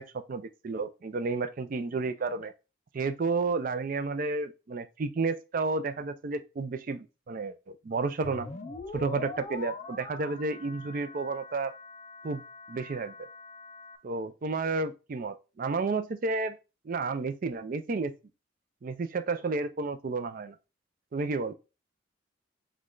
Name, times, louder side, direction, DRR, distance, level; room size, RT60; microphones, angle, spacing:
voice 1, 0.0-2.5 2.9-8.5 8.9-11.7 12.2-12.4 12.7-13.3 14.0-16.6 16.9-18.1 18.8-20.6 21.1-21.5, right 3 dB, 45° right, 0.4 m, -31 dB
sound 1, 8.2-14.0, left 3 dB, 35° left, 0.4 m, -43 dB
5.1 x 2.3 x 3.7 m
head